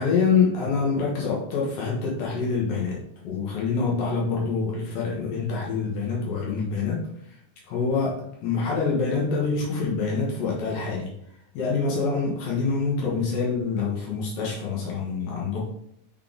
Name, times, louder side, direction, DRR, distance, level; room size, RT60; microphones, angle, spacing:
voice 1, 0.0-7.0 7.7-11.1 11.5-15.7, left 5 dB, 85° left, -3 dB, 3.0 m, -26 dB
6.5 x 4.0 x 3.8 m, 0.71 s
omnidirectional pair, 3.9 m